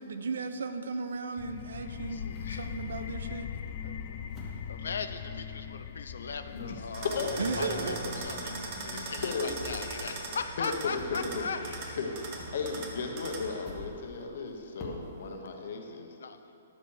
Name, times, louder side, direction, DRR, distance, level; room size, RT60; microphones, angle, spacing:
voice 1, 0.0-3.5 7.4-8.0, right 4 dB, 75° right, 9 dB, 0.7 m, -35 dB
sound 1, 1.1-3.2 3.7-5.8 6.0-11.7 12.0-15.4, left 2 dB, 15° left, 1.1 m, -51 dB
sound 2, 1.4-12.8, left 8 dB, 35° left, 0.4 m, -42 dB
voice 2, 2.0-2.7 3.8-4.2 4.7-7.3 7.6-11.6 16.2-16.4, left 5 dB, 90° left, 9 dB, 0.6 m, -39 dB
voice 3, 6.5-8.1 9.2-10.2 10.6-11.4 11.7-16.2, left 4 dB, 50° left, 3 dB, 1.1 m, -36 dB
sound 3, 6.9-13.6, right 2 dB, 25° right, 1.0 m, -40 dB
12.0 x 7.1 x 4.9 m, 2.9 s
hypercardioid pair, 175°, 0 cm